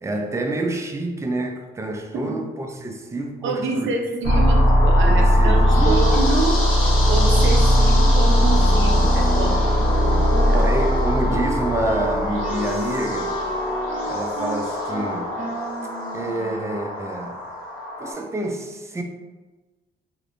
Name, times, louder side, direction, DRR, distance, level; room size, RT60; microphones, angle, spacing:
voice 1, 0.0-3.9 4.3-4.4 5.0-6.2 10.5-13.4 14.1-15.3 16.1-17.4 18.0-19.0, right 2 dB, 15° right, 3 dB, 0.4 m, -28 dB
voice 2, 3.4-6.6 7.1-9.6 10.0-10.2 10.5-10.6, right 3 dB, 65° right, 2 dB, 0.5 m, -27 dB
sound 1, 4.2-18.1, equal, 75° left, 0.7 m, -19 dB
Wind instrument woodwind instrument, 9.3-16.9, right 1 dB, 35° right, 0.9 m, -33 dB
2.7 x 2.1 x 2.6 m, 1.2 s
supercardioid pair, 55°, 21 cm